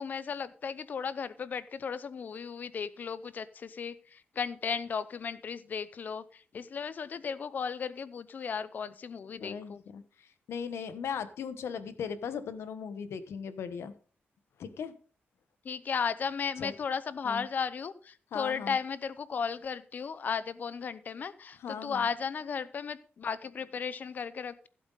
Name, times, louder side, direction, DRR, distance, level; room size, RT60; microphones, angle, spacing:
voice 1, 0.0-9.8 15.6-24.7, left 6 dB, 45° left, 15 dB, 0.7 m, -35 dB
voice 2, 9.3-13.9 14.6-14.9 16.6-16.7 17.2-17.4 18.3-18.8 21.6-22.1, left 7 dB, 90° left, 12 dB, 1.1 m, -38 dB
15.5 x 7.8 x 4.0 m, 0.40 s
wide cardioid pair, 180°, 4 cm